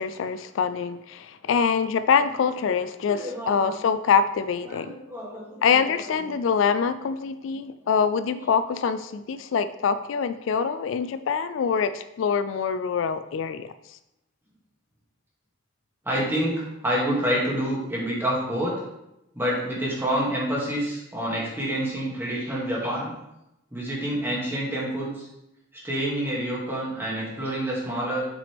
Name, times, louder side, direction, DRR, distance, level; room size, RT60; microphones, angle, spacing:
voice 1, 0.0-4.9 5.6-13.7, left 6 dB, 65° left, 12 dB, 0.3 m, -24 dB
voice 2, 3.0-3.7 4.7-6.1 8.3-8.5 16.0-18.7 19.3-23.1 23.7-25.3 25.8-28.2, right 1 dB, 10° right, -6 dB, 2.2 m, -28 dB
7.7 x 6.0 x 3.5 m, 0.88 s
head